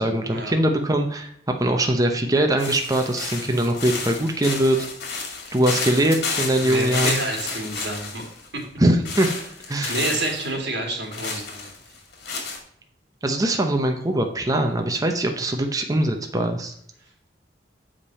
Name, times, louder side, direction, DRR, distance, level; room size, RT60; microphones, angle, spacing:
voice 1, 0.0-1.3 1.6-4.8 5.5-7.2 8.8-9.3 9.7-9.9 13.2-16.7, right 1 dB, 20° right, 4 dB, 0.7 m, -22 dB
sound 1, 2.6-8.5 9.1-10.5 11.1-12.6, left 4 dB, 65° left, 2.0 m, -31 dB
voice 2, 6.6-8.2 8.5-8.6 9.8-11.7, right 2 dB, 85° right, 0 dB, 2.5 m, -28 dB
7.3 x 5.1 x 4.1 m, 0.68 s
head